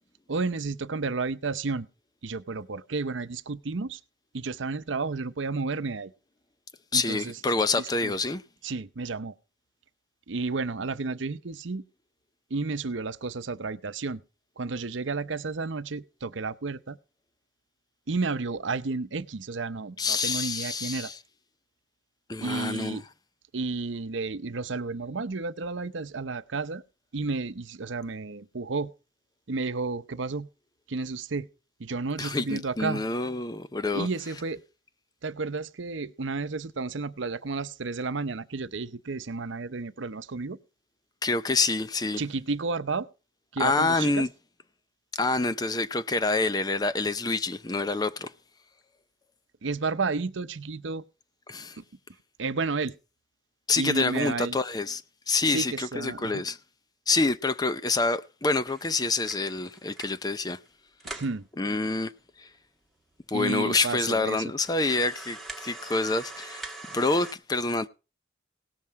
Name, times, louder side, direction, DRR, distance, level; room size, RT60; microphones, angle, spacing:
voice 1, 0.3-1.9 2.2-4.0 4.3-6.1 6.9-7.3 7.8-8.1 8.6-9.3 10.3-11.8 12.5-14.2 14.6-17.0 18.1-21.1 22.4-23.0 23.5-26.8 27.1-28.9 29.5-30.5 30.9-31.5 31.8-33.0 33.9-34.6 35.2-40.6 42.2-43.1 43.5-44.2 49.6-51.0 51.8-51.9 52.4-52.9 53.8-54.6 55.5-56.4 61.0-61.5 63.3-64.5, right 4 dB, 75° right, 0.7 m, -32 dB
voice 2, 6.9-8.4 20.0-21.2 22.3-23.0 32.2-34.1 41.2-42.2 43.6-44.3 45.1-48.3 51.5-51.8 53.7-55.0 55.3-56.6 57.1-60.6 61.6-62.1 62.4-62.5 63.3-66.7 66.9-67.9, left 3 dB, 20° left, 0.5 m, -27 dB
sound 1, 58.7-60.3 60.7-60.8 61.0-61.4 62.0-62.1 62.4-62.5 63.2-63.3 63.7-63.8 64.6-67.3, right 2 dB, ahead, 1.6 m, -43 dB
17.5 x 7.5 x 4.7 m
head